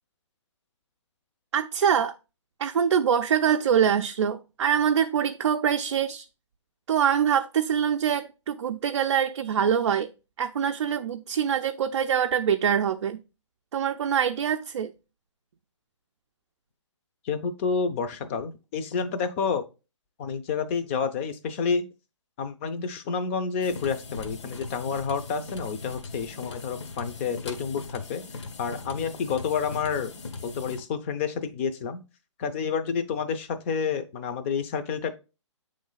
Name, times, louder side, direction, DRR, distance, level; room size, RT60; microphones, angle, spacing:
voice 1, 1.5-2.1 2.6-6.3 6.9-10.1 10.4-13.2 13.7-14.9, right 8 dB, 65° right, 0.4 m, -24 dB
voice 2, 17.2-19.7 20.2-21.9 22.4-30.1 30.4-32.0 32.4-35.1, left 6 dB, 25° left, 0.5 m, -29 dB
sound 1, 23.6-30.8, left 4 dB, 65° left, 0.9 m, -39 dB
7.7 x 3.2 x 3.8 m
hypercardioid pair, 150°, 16 cm